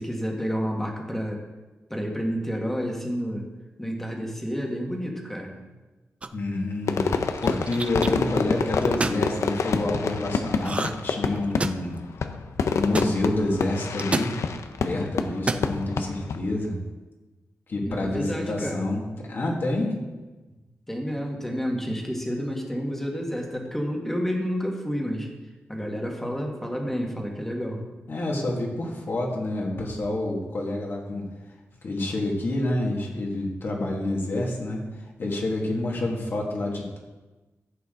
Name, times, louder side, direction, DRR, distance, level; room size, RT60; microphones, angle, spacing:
voice 1, 0.0-1.4 1.9-3.5 3.8-5.6 6.3-6.4 17.9-18.9 20.9-25.3 25.7-27.8, equal, 5° left, 0 dB, 1.7 m, -30 dB
sound 1, 6.2-6.6 7.4-8.1 8.8-9.2 10.6-11.1 11.4-12.0 12.9-13.1 14.0-14.3 15.3-15.7, right 3 dB, 25° right, 0.5 m, -28 dB
voice 2, 6.3-12.0 12.7-14.4 14.8-16.8 17.7-20.0 28.1-31.2 31.8-37.0, left 2 dB, 50° left, -2 dB, 2.0 m, -28 dB
Fireworks, 6.9-16.4, left 5 dB, 80° left, 0.7 m, -28 dB
14.5 x 8.4 x 3.8 m, 1.2 s
wide cardioid pair, 150°, 5 cm